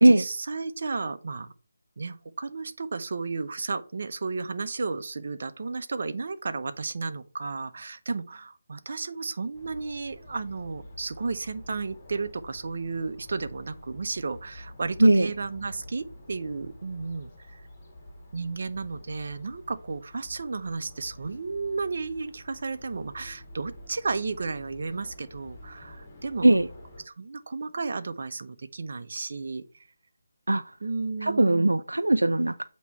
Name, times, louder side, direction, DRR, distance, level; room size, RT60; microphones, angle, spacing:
voice 1, 0.0-1.5 2.0-17.6 18.3-26.5 27.0-29.6 30.8-31.7, right 4 dB, 55° right, 0.7 m, -33 dB
sound 1, 9.5-27.0, left 1 dB, 25° left, 2.1 m, -48 dB
voice 2, 31.2-32.6, right 1 dB, 90° right, 0.4 m, -19 dB
8.1 x 3.1 x 5.7 m
figure-of-eight pair, 160°, 0 cm